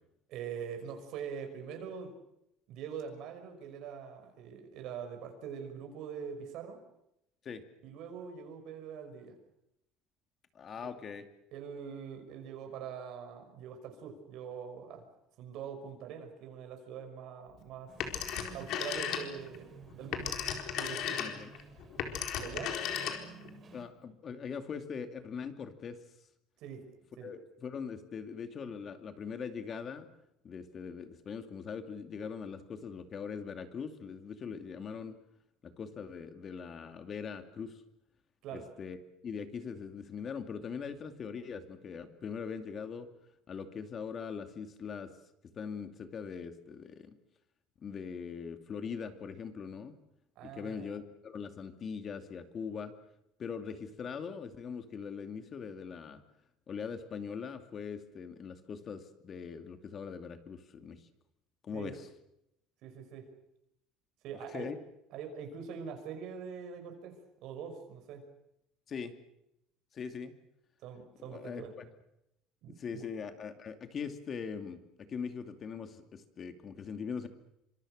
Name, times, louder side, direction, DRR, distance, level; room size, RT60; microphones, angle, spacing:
voice 1, 0.3-2.1 2.7-6.8 7.8-9.4 10.8-10.9 11.5-15.0 15.4-17.9 18.5-20.4 20.7-21.2 22.4-22.8 26.6-26.9 27.2-27.3 38.4-38.7 50.4-50.9 61.7-61.9 62.8-63.3 64.2-64.7 65.1-68.3 70.8-71.7 72.6-73.1, right 7 dB, 60° right, 5 dB, 5.7 m, -43 dB
voice 2, 10.5-11.2 21.2-21.5 23.7-26.0 27.2-30.1 30.4-35.2 35.6-37.8 38.5-39.0 39.2-43.1 43.5-45.1 45.6-47.2 47.8-50.0 50.4-52.9 53.4-56.2 56.7-61.0 61.6-62.1 64.5-64.8 68.9-69.2 69.9-70.3 71.3-71.9 72.7-77.3, left 6 dB, 35° left, 8 dB, 2.5 m, -41 dB
sound 1, 17.9-23.8, right 7 dB, 30° right, 4.0 m, -52 dB
Telephone, 18.0-19.6 19.9-23.5, left 8 dB, 55° left, 4.2 m, -35 dB
27.0 x 26.0 x 6.6 m, 0.83 s
cardioid pair, 145°, 0 cm